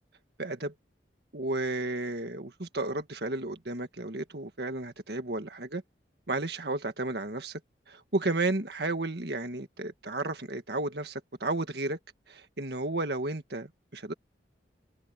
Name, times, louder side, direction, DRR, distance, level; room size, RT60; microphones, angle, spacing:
voice 1, 0.4-0.7 1.3-5.8 6.3-7.6 7.9-12.0 12.3-14.1, right 2 dB, 65° right, 1.8 m, -33 dB
open air
head